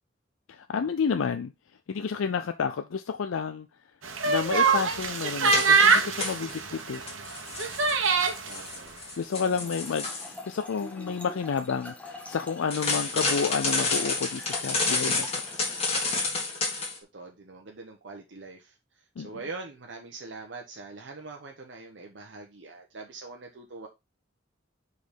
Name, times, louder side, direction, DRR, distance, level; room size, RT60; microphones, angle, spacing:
voice 1, 0.5-1.5 1.9-3.7 4.2-7.0 9.2-15.3 19.2-19.3, left 6 dB, 90° left, 0.4 m, -30 dB
sound 1, 4.0-8.5, right 5 dB, 80° right, 1.2 m, -24 dB
sound 2, 5.4-6.6 6.9-10.3 12.7-17.0, left 3 dB, 30° left, 1.7 m, -30 dB
voice 2, 8.5-9.0 17.1-18.7 19.2-23.9, right 3 dB, 65° right, 1.0 m, -43 dB
Trickle dribble / Fill (with liquid), 9.3-16.0, left 2 dB, 5° left, 1.3 m, -45 dB
5.1 x 4.1 x 5.1 m
head